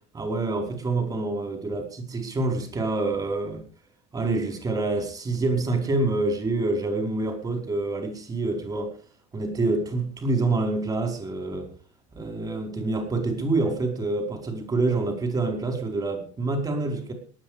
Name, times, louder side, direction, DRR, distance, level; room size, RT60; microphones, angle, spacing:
voice 1, 0.1-3.6 4.1-8.9 9.3-11.7 12.1-17.1, right 2 dB, 20° right, 4 dB, 4.7 m, -27 dB
19.0 x 11.0 x 5.0 m, 0.41 s
cardioid pair, 130°, 17 cm